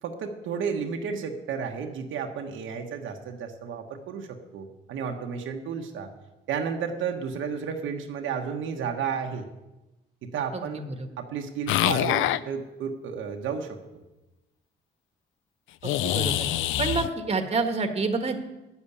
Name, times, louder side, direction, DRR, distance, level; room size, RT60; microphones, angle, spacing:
voice 1, 0.0-4.3 4.5-6.1 6.5-9.5 10.3-10.8 11.2-13.8, right 6 dB, 80° right, 3 dB, 1.2 m, -32 dB
voice 2, 10.5-11.1 15.8-16.5 16.8-18.4, right 3 dB, 30° right, 5 dB, 1.4 m, -28 dB
sound 1, 11.7-12.4 15.8-17.1, left 13 dB, 85° left, 0.4 m, -25 dB
9.4 x 7.1 x 8.5 m, 1.0 s
cardioid pair, 90°, 20 cm